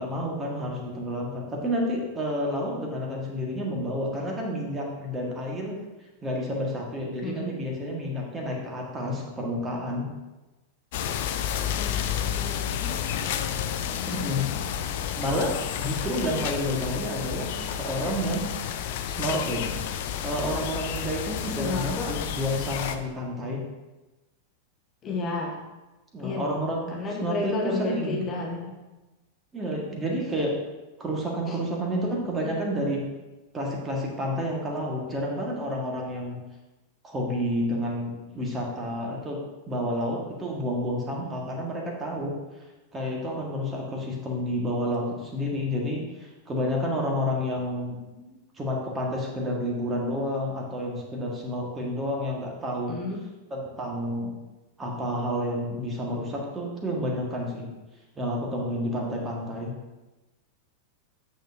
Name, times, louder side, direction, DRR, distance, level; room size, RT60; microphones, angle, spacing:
voice 1, 0.0-5.8 6.2-10.1 14.1-14.5 15.1-18.4 19.1-19.7 20.2-23.6 26.1-28.2 29.5-30.5 31.0-33.0 33.5-36.4 37.0-39.4 39.7-42.3 42.9-48.0 48.6-53.0 53.5-54.3 54.8-57.7 58.1-59.7, equal, 20° right, -1 dB, 1.6 m, -30 dB
sound 1, 10.9-23.0, left 9 dB, 50° left, 0.5 m, -31 dB
voice 2, 11.8-14.5 21.5-22.2 25.0-25.6 26.2-28.7 31.5-31.6 32.4-32.6 48.1-48.4 52.9-53.2, left 3 dB, 25° left, -1 dB, 1.2 m, -33 dB
8.9 x 6.3 x 2.7 m, 1.1 s
figure-of-eight pair, 90°, 0 cm